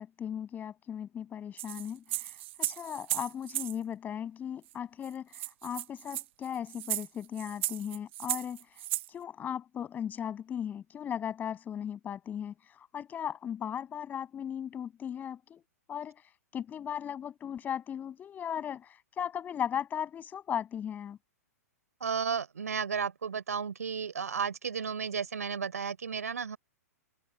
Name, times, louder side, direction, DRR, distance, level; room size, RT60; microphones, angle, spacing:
voice 1, 0.0-2.3 2.6-5.3 5.6-8.7 9.1-15.6 15.9-16.2 16.5-21.2, left 9 dB, 20° left, 7.3 m, -37 dB
sound 1, 1.6-3.7 4.7-4.8 5.0-5.1 5.3-9.1, right 16 dB, 45° right, 1.5 m, -35 dB
voice 2, 22.0-26.6, right 6 dB, 65° right, 4.6 m, -33 dB
open air
figure-of-eight pair, 110°, 9 cm